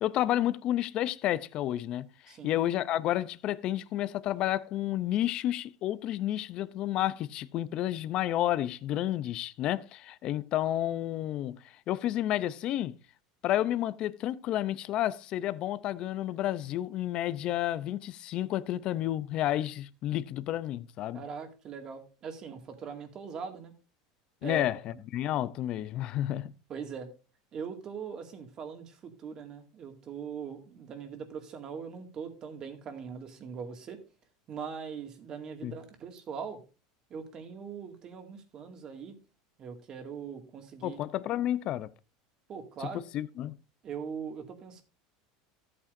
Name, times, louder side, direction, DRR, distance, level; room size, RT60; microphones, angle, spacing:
voice 1, 0.0-11.6 11.9-13.0 13.4-21.2 24.4-24.8 25.1-26.5 35.6-35.8 40.8-41.9 42.8-42.9 43.1-43.6, left 13 dB, 45° left, 0.5 m, -31 dB
voice 2, 2.3-2.6 21.1-23.7 24.4-25.0 26.7-27.1 27.5-34.0 34.5-36.6 37.1-39.2 39.6-41.0 42.5-43.0 43.8-44.8, right 6 dB, 35° right, 2.1 m, -41 dB
13.5 x 8.6 x 2.6 m
supercardioid pair, 130°, 2 cm